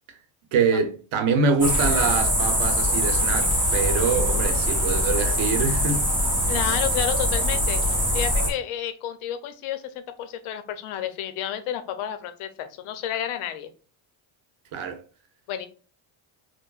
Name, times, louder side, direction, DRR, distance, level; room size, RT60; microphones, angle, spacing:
voice 1, 0.5-6.1 14.7-15.0, right 5 dB, 75° right, 0.8 m, -25 dB
sound 1, 1.6-8.5, equal, 10° right, 0.8 m, -23 dB
voice 2, 6.5-7.8 8.1-13.7 15.5-15.7, left 10 dB, 80° left, 0.6 m, -31 dB
4.5 x 2.1 x 2.4 m
cardioid pair, 170°, 49 cm